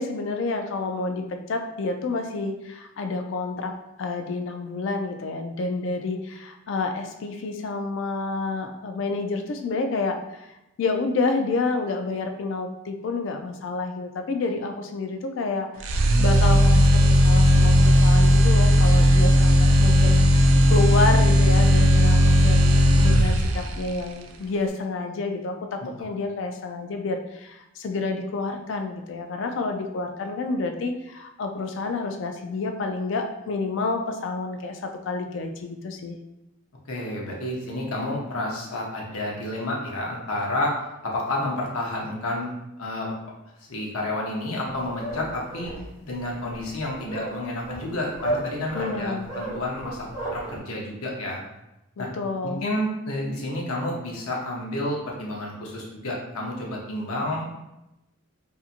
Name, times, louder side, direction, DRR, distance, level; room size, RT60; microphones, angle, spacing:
voice 1, 0.0-36.2 48.7-49.3 52.0-52.6, left 3 dB, 60° left, 5 dB, 0.3 m, -29 dB
sound 1, 15.8-23.8, equal, 70° right, 0.3 m, -16 dB
voice 2, 36.9-40.7 41.0-43.1 43.7-45.7 46.0-50.0 50.3-51.4 52.0-52.1 52.4-57.5, left 1 dB, 90° left, -2 dB, 0.7 m, -30 dB
sound 2, 44.6-50.6, right 1 dB, 15° right, 0.8 m, -33 dB
2.7 x 2.5 x 2.4 m, 0.92 s
head